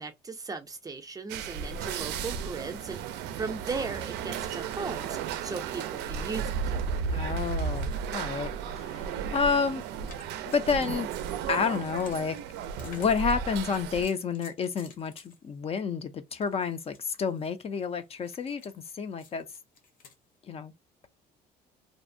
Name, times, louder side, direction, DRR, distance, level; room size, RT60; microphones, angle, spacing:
voice 1, 0.0-6.6, right 4 dB, 20° right, 0.5 m, -37 dB
sound 1, 1.3-14.1, right 7 dB, 85° right, 0.4 m, -34 dB
voice 2, 7.1-9.8 10.5-11.1 11.5-12.4 12.8-19.5 20.5-20.7, left 5 dB, 35° left, 0.4 m, -30 dB
sound 2, 9.8-15.7 16.4-20.1, left 5 dB, 55° left, 0.8 m, -55 dB
2.5 x 2.0 x 2.5 m
cardioid pair, 110°, 17 cm